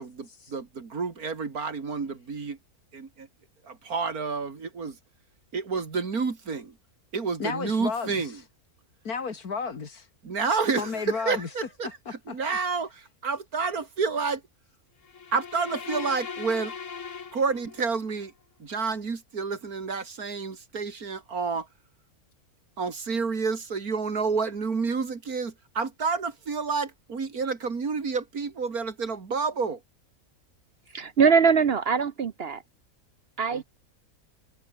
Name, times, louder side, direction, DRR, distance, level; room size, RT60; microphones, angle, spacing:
voice 1, 0.0-2.6 2.9-3.3 3.6-5.0 5.5-6.8 7.1-8.4 10.2-14.4 15.3-16.7 17.3-18.3 18.6-21.7 22.8-29.8 33.5-33.6, right 5 dB, 75° right, 2.9 m, -29 dB
voice 2, 7.4-8.2 9.0-10.1 10.8-11.5 12.1-12.6, left 5 dB, 80° left, 2.8 m, -32 dB
sound 1, 15.0-18.1, left 6 dB, 55° left, 1.9 m, -39 dB
voice 3, 30.9-32.6 33.4-33.6, right 6 dB, 50° right, 0.9 m, -22 dB
omnidirectional pair, 1.6 m